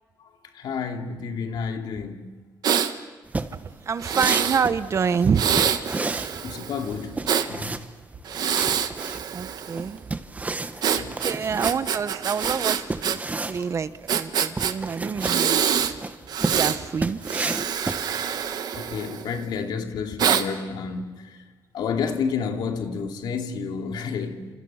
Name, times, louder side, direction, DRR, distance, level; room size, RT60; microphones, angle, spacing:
voice 1, 0.5-2.3 6.4-7.8 10.9-11.2 18.7-21.4 21.7-24.5, left 6 dB, 80° left, 2.7 m, -30 dB
Breathing, 2.6-2.9 4.0-4.6 5.3-7.5 8.2-9.9 10.8-13.2 13.4-13.5 14.1-14.7 15.2-15.9 16.3-16.8 17.2-19.4 20.2-20.4, right 8 dB, 60° right, 1.4 m, -25 dB
sound 1, 3.3-18.5, right 3 dB, 20° right, 1.2 m, -32 dB
voice 2, 3.4-5.7 9.3-10.0 11.2-16.1 16.4-17.2, right 6 dB, 40° right, 1.0 m, -27 dB
30.0 x 27.0 x 5.7 m
cardioid pair, 125°, 8 cm